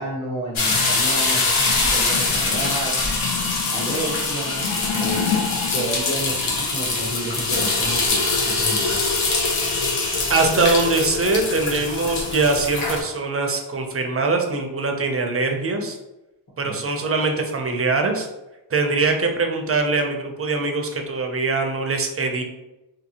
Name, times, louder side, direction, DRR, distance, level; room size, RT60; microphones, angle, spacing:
voice 1, 0.0-3.0 3.7-4.7 5.0-5.2 5.7-9.2 16.6-16.8, right 1 dB, 35° left, -8 dB, 0.7 m, -31 dB
sound 1, 0.6-13.0, left 3 dB, 85° left, 0.7 m, -23 dB
voice 2, 10.3-16.0 16.6-18.3 18.7-22.4, right 3 dB, 30° right, 3 dB, 0.4 m, -22 dB
2.7 x 2.6 x 2.7 m, 0.98 s
wide cardioid pair, 115°, 48 cm